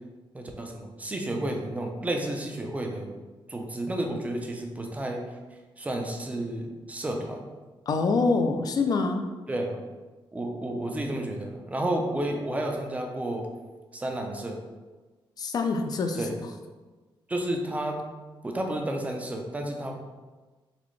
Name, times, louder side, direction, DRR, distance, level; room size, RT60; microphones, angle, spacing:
voice 1, 0.3-3.1 3.5-7.5 9.5-9.8 10.3-13.5 13.9-14.6 16.2-16.4 17.3-18.0 18.4-19.9, right 1 dB, 15° right, 2 dB, 0.4 m, -31 dB
voice 2, 7.9-9.2 15.4-16.2, left 4 dB, 45° left, 6 dB, 0.4 m, -25 dB
4.0 x 3.6 x 3.1 m, 1.3 s
wide cardioid pair, 180°, 9 cm